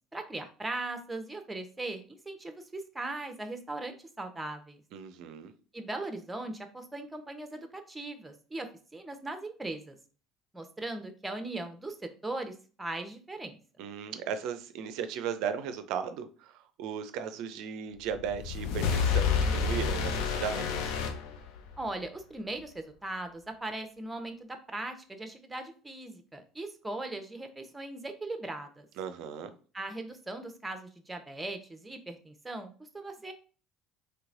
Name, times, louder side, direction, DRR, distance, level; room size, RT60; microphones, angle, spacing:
voice 1, 0.1-4.8 5.7-10.0 10.5-13.6 21.8-28.9 29.7-33.3, right 2 dB, 10° right, 0.7 m, -39 dB
voice 2, 4.9-5.5 13.8-20.9 29.0-29.5, right 7 dB, 65° right, 0.4 m, -36 dB
sound 1, 18.1-21.9, left 6 dB, 70° left, 0.5 m, -29 dB
3.2 x 3.0 x 2.5 m
hypercardioid pair, 70°, 0 cm